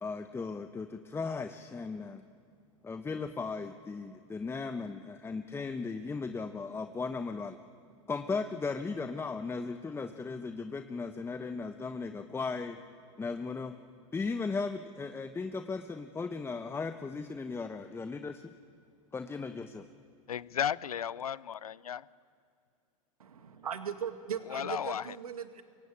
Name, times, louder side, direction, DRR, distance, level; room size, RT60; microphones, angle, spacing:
voice 1, 0.0-2.2 2.8-7.6 8.1-12.8 13.2-13.7 14.1-18.4 19.1-19.8, left 4 dB, 15° left, 8 dB, 1.1 m, -36 dB
voice 2, 20.3-22.0 24.5-25.0, left 9 dB, 85° left, 20 dB, 0.7 m, -34 dB
voice 3, 23.2-25.6, right 7 dB, 85° right, 8 dB, 2.1 m, -38 dB
25.0 x 23.0 x 8.7 m, 2.4 s
hypercardioid pair, 100°, 18 cm